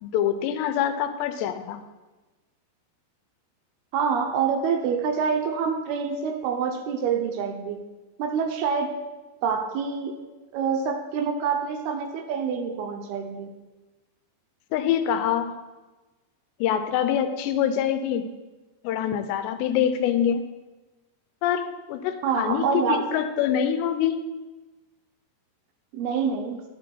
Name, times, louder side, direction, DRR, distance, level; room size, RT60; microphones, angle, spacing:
voice 1, 0.0-1.8 14.7-15.6 16.6-18.3 18.8-20.5 21.4-24.2, left 9 dB, 90° left, 10 dB, 2.9 m, -25 dB
voice 2, 3.9-7.8 8.2-8.9 9.4-10.2 10.5-13.5 22.2-23.1 25.9-26.6, right 6 dB, 80° right, 5 dB, 2.6 m, -26 dB
11.0 x 7.4 x 4.5 m, 1.2 s
omnidirectional pair, 4.9 m